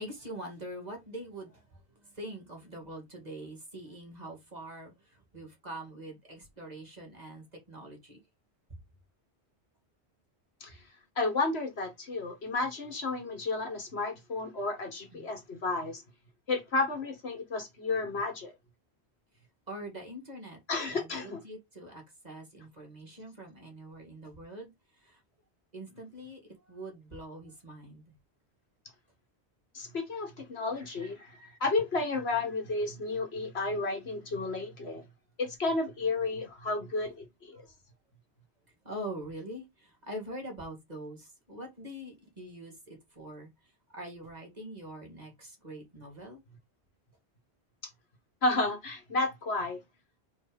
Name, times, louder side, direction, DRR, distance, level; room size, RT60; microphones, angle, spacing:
voice 1, 0.0-8.2 8.7-8.8 15.1-15.3 19.3-20.6 20.9-25.2 25.7-28.1 37.5-37.7 38.8-46.4, right 1 dB, 40° right, 2.5 m, -44 dB
voice 2, 11.2-16.0 16.5-18.5 20.7-21.4 29.7-35.0 35.4-37.6 48.4-49.8, left 3 dB, 70° left, 1.8 m, -32 dB
4.7 x 4.4 x 5.2 m
omnidirectional pair, 1.1 m